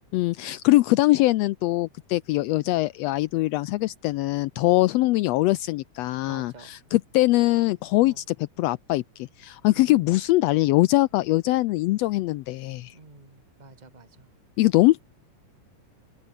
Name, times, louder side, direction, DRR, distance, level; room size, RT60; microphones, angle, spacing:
voice 1, 0.1-12.9 14.6-15.0, left 18 dB, 80° left, 1.5 m, -22 dB
voice 2, 6.3-6.8 8.0-8.2 9.7-10.1 12.9-14.3, right 3 dB, 15° right, 2.9 m, -49 dB
omnidirectional pair, 3.4 m